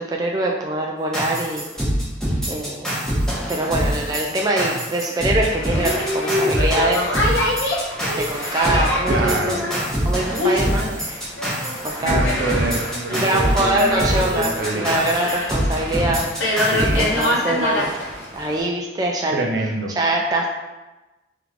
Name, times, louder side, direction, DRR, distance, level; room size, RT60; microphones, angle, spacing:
voice 1, 0.0-1.6 2.5-2.9 3.5-7.1 8.0-9.5 10.0-11.3 11.8-12.2 13.1-16.6 16.9-17.9 18.3-19.4 20.0-20.5, right 1 dB, 20° right, -1 dB, 0.3 m, -23 dB
sound 1, 1.1-18.0, equal, 5° left, 1.0 m, -25 dB
Boat Water vehicle, 5.4-18.6, left 1 dB, 90° left, 0.9 m, -25 dB
voice 2, 9.1-9.6 12.0-15.0 16.7-17.0 19.3-19.9, right 2 dB, 65° right, 2 dB, 0.6 m, -26 dB
3.7 x 3.2 x 3.5 m, 1.1 s
head